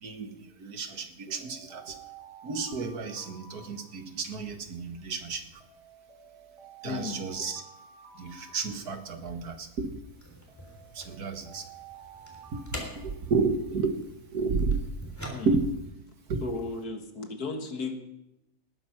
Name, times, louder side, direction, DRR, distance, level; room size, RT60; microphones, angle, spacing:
voice 1, 0.0-2.0 2.4-5.5 6.8-7.6 8.2-9.9 10.9-11.6 12.5-12.7 13.0-14.0 14.3-14.8 15.5-15.7 16.3-16.4, right 4 dB, 90° right, 7 dB, 2.0 m, -31 dB
sound 1, 1.3-4.5 5.6-9.4 10.5-13.7, right 7 dB, 65° right, 4.8 m, -51 dB
voice 2, 6.8-7.2 15.3-15.6 16.4-18.0, left 4 dB, 85° left, 5 dB, 2.2 m, -34 dB
sound 2, 10.1-15.7, equal, 10° left, 3.1 m, -45 dB
19.0 x 9.2 x 5.9 m, 0.88 s
omnidirectional pair, 1.6 m